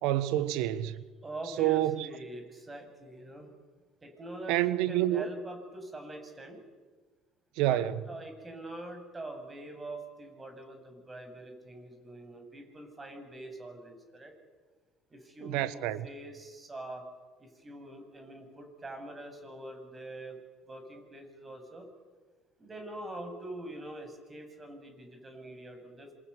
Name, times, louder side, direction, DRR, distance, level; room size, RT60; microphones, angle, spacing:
voice 1, 0.0-1.0 1.6-2.1 4.5-5.3 7.6-8.0 15.4-16.1, right 14 dB, 65° right, 1.4 m, -28 dB
voice 2, 1.2-3.5 4.0-6.6 7.7-7.8 8.1-14.3 15.1-17.0 17.4-20.4 20.7-21.9 22.6-26.1, right 1 dB, 25° right, 7.9 m, -44 dB
26.5 x 26.5 x 8.5 m
hypercardioid pair, 65°, 0 cm